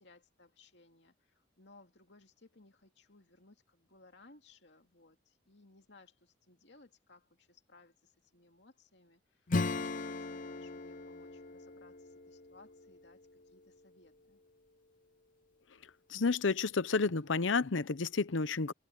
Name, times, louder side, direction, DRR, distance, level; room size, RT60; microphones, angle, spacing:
voice 1, 0.0-14.4, left 3 dB, 65° left, 2.6 m, -62 dB
Acoustic guitar / Strum, 9.5-13.8, left 3 dB, 45° left, 0.6 m, -38 dB
voice 2, 16.1-18.7, left 4 dB, 85° left, 0.8 m, -30 dB
head